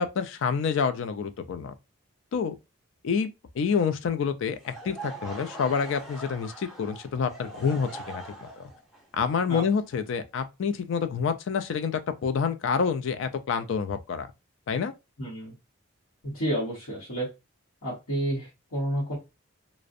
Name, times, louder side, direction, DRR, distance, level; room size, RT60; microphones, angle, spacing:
voice 1, 0.0-1.7 2.3-2.5 3.0-3.3 3.6-8.2 8.6-8.7 9.2-14.3 14.7-14.9, left 6 dB, 60° left, 0.3 m, -28 dB
Laughter / Crowd, 4.5-10.5, right 2 dB, ahead, 0.6 m, -42 dB
voice 2, 15.2-15.5 16.2-17.3 17.8-19.2, right 1 dB, 80° left, 0.8 m, -30 dB
2.5 x 2.0 x 2.4 m
head